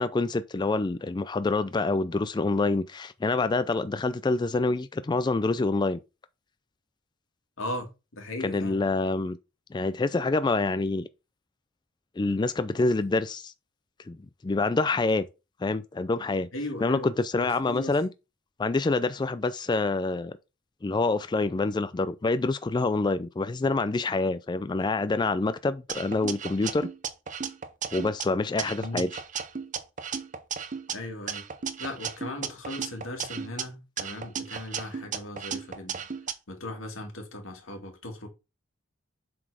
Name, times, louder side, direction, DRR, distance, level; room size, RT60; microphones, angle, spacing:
voice 1, 0.0-6.0 8.4-9.4 9.7-11.1 12.2-13.5 14.1-14.2 14.4-15.3 15.6-16.5 16.8-18.1 18.6-20.4 20.8-26.9 27.9-29.1, left 3 dB, 20° left, 0.4 m, -26 dB
voice 2, 7.6-8.8 16.5-18.0 28.8-29.0 30.9-31.5 31.8-36.1 36.5-38.3, left 1 dB, 90° left, 2.2 m, -37 dB
sound 1, 25.9-28.2 28.6-30.9 31.3-33.6 34.0-36.3, right 7 dB, 40° right, 0.7 m, -35 dB
7.6 x 4.1 x 4.8 m
head